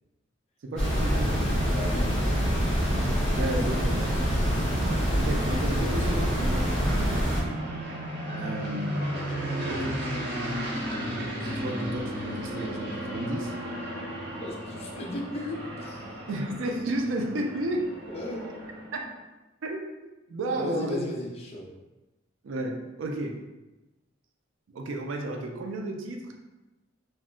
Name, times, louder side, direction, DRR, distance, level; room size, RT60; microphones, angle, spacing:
voice 1, 0.6-1.4 3.3-4.6 5.1-7.2 8.4-9.0 9.6-10.0 11.4-13.5 16.3-17.9 18.9-19.1 19.6-21.1 22.4-23.4 24.7-26.3, right 1 dB, 70° right, 3 dB, 0.4 m, -32 dB
sound 1, 0.8-7.4, equal, 5° left, 0.9 m, -25 dB
voice 2, 1.7-2.1 14.4-16.0 18.1-18.5 20.6-21.6, left 1 dB, 30° left, -1 dB, 0.4 m, -36 dB
sound 2, 2.7-19.1, equal, 50° right, 0.8 m, -35 dB
2.2 x 2.1 x 3.6 m, 1.1 s
head